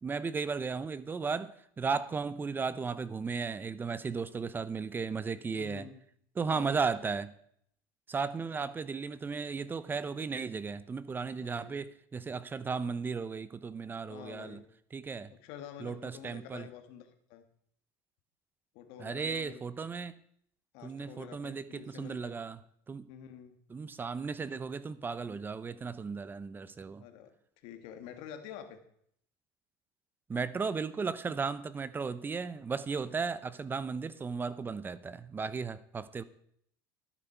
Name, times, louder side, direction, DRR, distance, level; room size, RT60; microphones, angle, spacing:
voice 1, 0.0-5.9 6.4-7.3 8.1-14.6 14.9-15.3 15.8-16.6 19.0-20.1 20.8-22.6 22.9-23.1 23.7-27.0 30.3-36.2, right 5 dB, 20° right, 16 dB, 0.7 m, -35 dB
voice 2, 5.6-6.0 6.5-6.8 8.4-8.7 11.4-11.8 14.1-14.7 15.3-17.4 18.7-19.6 20.7-22.4 23.1-23.6 27.0-28.8, left 9 dB, 65° left, 7 dB, 1.8 m, -48 dB
12.0 x 10.0 x 4.5 m, 0.67 s
supercardioid pair, 115°, 10 cm